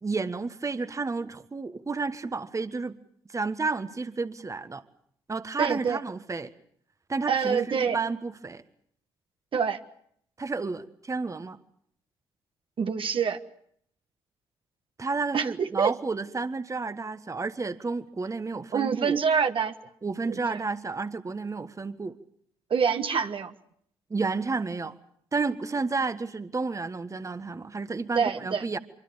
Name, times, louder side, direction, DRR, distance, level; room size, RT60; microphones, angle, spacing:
voice 1, 0.0-3.0 3.3-4.8 5.3-6.5 7.1-8.6 10.4-11.6 15.0-19.2 20.0-22.2 24.1-24.9 25.3-28.8, right 4 dB, 25° right, 11 dB, 1.5 m, -31 dB
voice 2, 5.6-6.0 7.3-8.0 9.5-9.8 12.8-13.4 15.3-16.0 18.7-19.7 20.3-20.6 22.7-23.5 28.1-28.7, right 6 dB, 50° right, 7 dB, 1.5 m, -26 dB
24.5 x 23.5 x 7.0 m, 0.67 s
hypercardioid pair, 50°, 11 cm